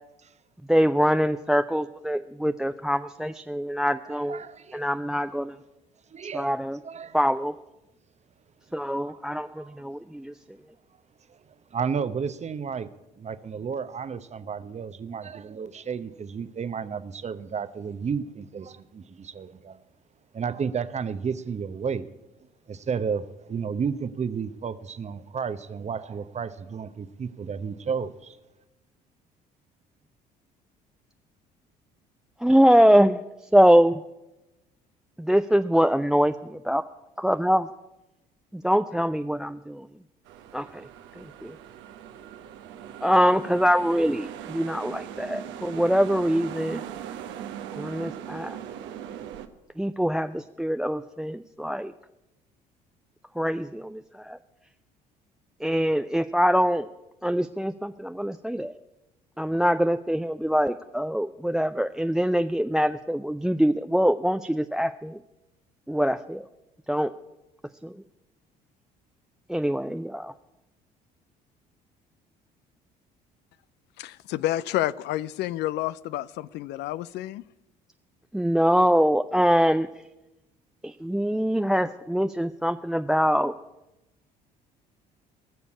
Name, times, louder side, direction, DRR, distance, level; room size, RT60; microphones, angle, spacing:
voice 1, 0.7-4.4 4.7-5.6 6.3-6.8 7.1-7.5 8.7-10.3 32.4-33.2 33.5-34.0 35.2-36.8 37.2-37.7 38.5-39.9 40.5-40.9 41.2-41.6 43.0-46.8 47.8-48.6 49.8-51.9 53.4-54.4 55.6-56.9 57.2-58.7 59.4-65.2 65.9-66.5 66.9-67.1 67.8-68.0 69.5-70.3 78.3-79.9 80.8-83.5, equal, 5° right, 0.4 m, -23 dB
voice 2, 4.3-4.8 5.1-5.2 6.1-6.5 6.8-7.2 8.8-9.2 9.5-9.7 11.3-11.4 11.7-12.9 13.2-19.8 20.3-22.1 22.7-28.4, right 6 dB, 30° right, 0.8 m, -32 dB
sound 1, 40.2-49.5, right 10 dB, 60° right, 1.0 m, -40 dB
voice 3, 74.0-77.4, left 14 dB, 55° left, 0.4 m, -29 dB
18.5 x 7.0 x 8.5 m
hypercardioid pair, 55°, 21 cm